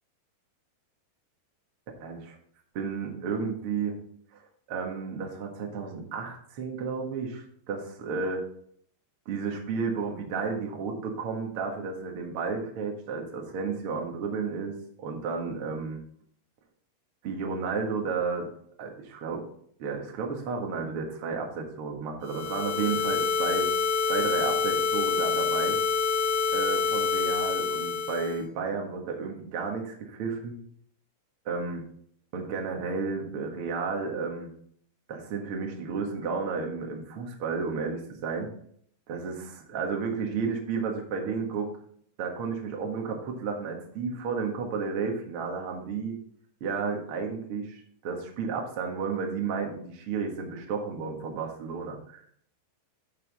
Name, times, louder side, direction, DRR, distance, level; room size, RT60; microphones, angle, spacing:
voice 1, 2.0-2.4 2.7-3.9 4.3-4.4 4.7-8.4 9.2-16.0 17.2-18.5 18.8-19.4 19.8-23.7 24.1-25.8 26.5-30.6 31.4-31.8 32.3-34.5 35.1-38.5 39.1-41.7 42.2-46.2 46.6-52.2, right 5 dB, 80° right, 2 dB, 1.2 m, -32 dB
sound 1, 22.3-28.4, left 5 dB, 90° left, 4.6 m, -27 dB
11.0 x 5.7 x 4.1 m, 0.64 s
omnidirectional pair, 5.1 m